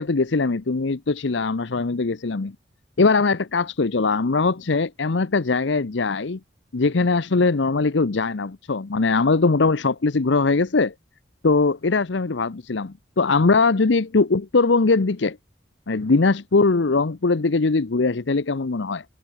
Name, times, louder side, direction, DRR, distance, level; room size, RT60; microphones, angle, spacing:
voice 1, 0.0-2.6 3.0-6.4 6.7-10.9 11.4-15.4 15.9-19.0, left 3 dB, 75° left, 0.7 m, -21 dB
head